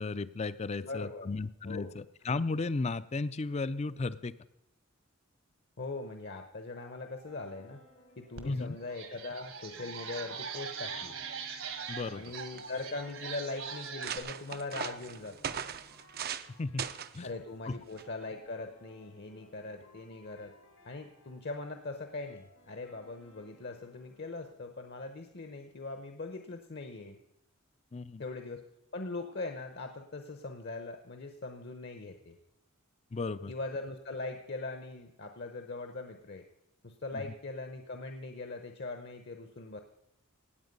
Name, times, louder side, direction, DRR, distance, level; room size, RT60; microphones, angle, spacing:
voice 1, 0.0-4.3 8.4-8.8 11.9-12.2 16.6-16.8 17.1-17.3 17.7-17.8 27.9-28.2 33.1-33.5, left 3 dB, 30° left, 16 dB, 0.4 m, -34 dB
voice 2, 0.8-1.3 1.6-2.0 5.8-7.8 8.2-11.1 12.1-15.6 17.2-20.5 20.8-27.2 28.2-28.6 28.9-32.4 33.5-36.5 36.8-39.8, left 3 dB, 50° left, 6 dB, 0.9 m, -41 dB
sound 1, 6.7-25.7, left 1 dB, 85° left, 4.9 m, -61 dB
sound 2, 8.4-8.5 8.8-14.2, right 6 dB, 70° right, 1.6 m, -41 dB
sound 3, 11.9-12.0 12.2-12.8 13.4-13.5 13.8-16.5 16.8-17.2 18.0-18.2, right 8 dB, 45° right, 0.5 m, -39 dB
17.5 x 8.8 x 5.4 m, 0.81 s
head